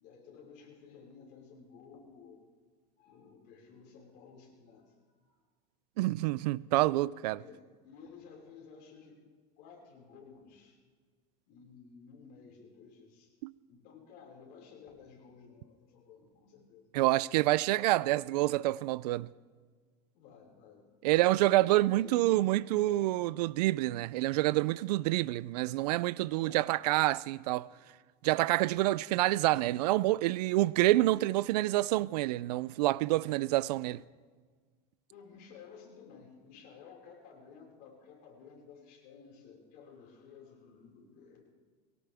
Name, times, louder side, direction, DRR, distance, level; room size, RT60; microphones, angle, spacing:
voice 1, 0.0-2.5 3.0-5.3 7.3-9.2 9.6-10.8 11.5-13.3 13.7-16.8 20.1-20.8 21.6-22.6 26.4-26.7 33.6-33.8 35.1-41.5, left 6 dB, 50° left, 5.1 m, -54 dB
voice 2, 6.0-7.4 13.4-13.5 16.9-19.3 21.0-27.7 28.2-34.0, right 17 dB, 85° right, 0.4 m, -27 dB
23.0 x 18.0 x 3.5 m
supercardioid pair, 145°, 20 cm